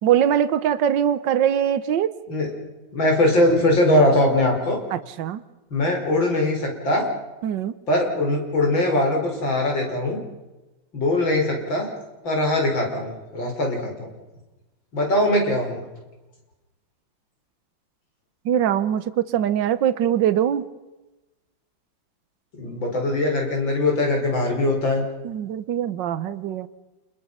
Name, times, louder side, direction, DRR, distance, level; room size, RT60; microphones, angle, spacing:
voice 1, 0.0-2.1 4.9-5.4 7.4-7.7 18.4-20.7 25.2-26.7, right 10 dB, 75° right, 13 dB, 1.6 m, -22 dB
voice 2, 2.9-4.8 5.7-7.1 7.9-10.2 10.9-11.9 12.2-14.1 14.9-15.8 22.6-25.0, left 1 dB, 80° left, 1 dB, 6.0 m, -21 dB
29.0 x 21.0 x 5.6 m, 1.1 s
omnidirectional pair, 2.1 m